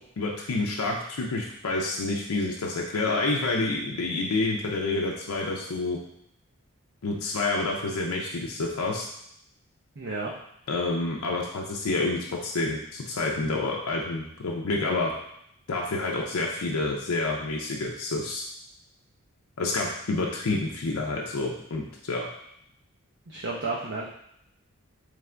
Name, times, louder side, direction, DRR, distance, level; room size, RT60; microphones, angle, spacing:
voice 1, 0.2-6.0 7.0-9.0 10.7-15.1 15.7-18.4 19.6-22.3, left 2 dB, 80° left, -1 dB, 0.6 m, -28 dB
voice 2, 10.0-10.3 23.3-24.0, right 3 dB, 55° right, -4 dB, 0.6 m, -32 dB
3.7 x 3.3 x 3.3 m, 0.73 s
head